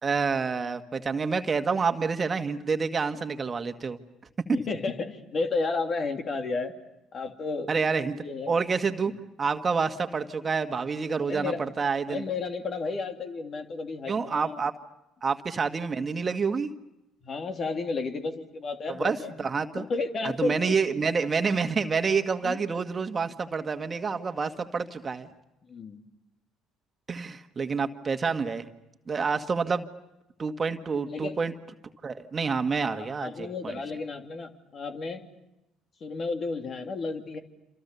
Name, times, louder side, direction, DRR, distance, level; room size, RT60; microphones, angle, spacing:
voice 1, 0.0-4.0 7.7-9.1 9.4-12.2 14.1-14.7 15.2-16.7 19.0-19.8 20.4-25.3 27.1-28.6 29.1-29.9 30.4-31.5 32.0-33.8, right 5 dB, 35° right, 7 dB, 1.8 m, -28 dB
voice 2, 4.5-6.7 7.1-7.7 8.2-8.5 11.3-11.6 12.1-14.6 17.2-19.4 19.8-20.7 22.4-22.6 25.7-26.0 31.1-31.4 32.9-35.2 36.0-37.4, left 3 dB, 45° left, 5 dB, 3.1 m, -32 dB
28.0 x 28.0 x 7.0 m, 0.92 s
hypercardioid pair, 60°, 0 cm